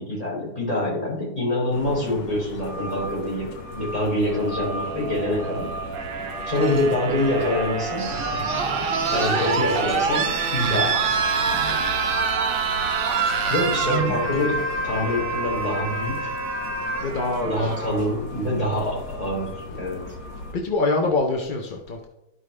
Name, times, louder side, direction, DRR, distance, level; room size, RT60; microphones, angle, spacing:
voice 1, 0.0-5.8 6.5-8.5 9.1-11.0 13.5-16.3 17.5-20.1, left 1 dB, 20° left, -5 dB, 3.1 m, -25 dB
sound 1, 1.7-20.5, left 2 dB, 85° left, 1.8 m, -36 dB
sound 2, 4.2-18.2 19.4-19.5, right 5 dB, 70° right, 0.5 m, -26 dB
sound 3, 6.4-12.4 12.7-14.4, right 4 dB, 40° right, 2.2 m, -38 dB
voice 2, 9.1-9.7 17.0-17.7 20.5-22.1, left 2 dB, 50° left, 1 dB, 0.6 m, -25 dB
12.5 x 5.2 x 3.2 m, 0.91 s
omnidirectional pair, 1.9 m